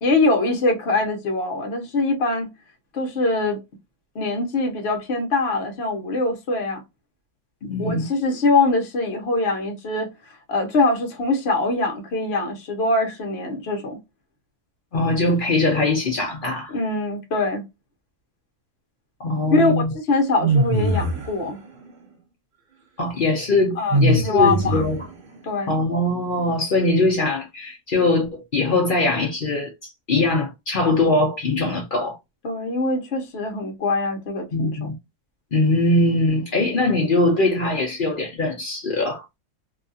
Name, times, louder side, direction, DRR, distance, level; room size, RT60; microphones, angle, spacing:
voice 1, 0.0-2.5 2.9-3.6 4.1-6.8 7.8-10.1 10.5-14.0 16.7-17.6 19.5-21.6 23.8-24.9 25.4-25.8 32.4-34.8, left 2 dB, 50° left, 0.8 m, -23 dB
voice 2, 7.6-8.1 14.9-16.7 19.2-19.9 23.0-25.1 25.7-32.2 34.5-34.9 35.5-39.2, left 2 dB, 70° left, 0.4 m, -21 dB
sound 1, 20.4-21.3 23.9-25.1, right 1 dB, 55° right, 0.5 m, -21 dB
2.7 x 2.3 x 2.6 m
omnidirectional pair, 1.7 m